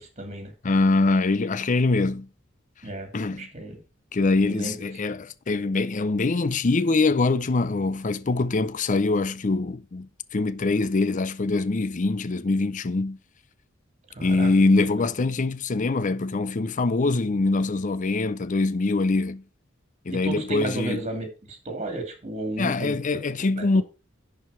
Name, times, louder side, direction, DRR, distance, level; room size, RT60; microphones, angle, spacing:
voice 1, 0.0-0.5 2.8-3.8 4.4-4.8 14.1-14.9 20.1-23.3 23.5-23.8, right 2 dB, 35° right, 2.7 m, -34 dB
voice 2, 0.6-2.3 3.1-3.5 4.1-13.2 14.2-19.4 20.1-21.1 22.6-23.8, left 3 dB, 40° left, 0.5 m, -23 dB
10.5 x 4.7 x 5.7 m
head